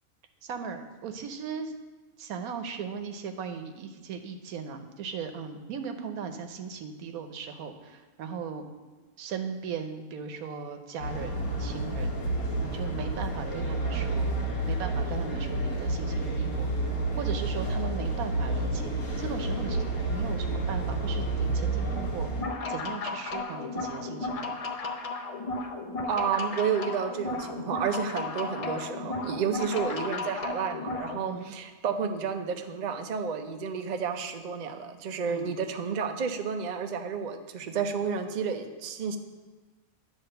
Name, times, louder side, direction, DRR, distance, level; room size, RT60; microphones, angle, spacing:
voice 1, 0.4-1.7 2.2-8.7 9.2-12.3 12.6-14.3 14.7-16.7 17.2-22.3 22.7-24.6 31.3-31.4 35.3-35.5, right 6 dB, 85° right, 7 dB, 1.2 m, -38 dB
sound 1, 11.0-22.4, right 2 dB, 85° left, 1.7 m, -30 dB
sound 2, 22.3-31.2, left 3 dB, 50° left, 0.4 m, -34 dB
voice 2, 26.1-39.2, right 6 dB, 60° right, 6 dB, 0.4 m, -31 dB
10.0 x 3.5 x 6.6 m, 1.3 s
omnidirectional pair, 1.5 m